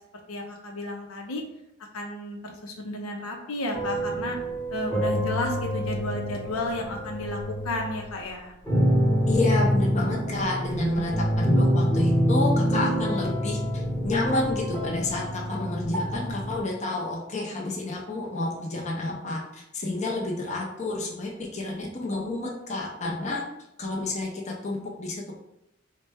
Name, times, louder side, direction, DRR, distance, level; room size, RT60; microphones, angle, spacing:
voice 1, 0.3-1.4 1.9-4.4 4.7-7.4 7.6-8.5, left 1 dB, 90° left, 1 dB, 0.7 m, -32 dB
sound 1, 3.7-8.1 8.7-16.6, equal, 10° left, 1.0 m, -26 dB
voice 2, 9.3-23.4 23.8-25.4, left 2 dB, 35° left, -2 dB, 0.6 m, -30 dB
4.1 x 2.2 x 3.4 m, 0.82 s
head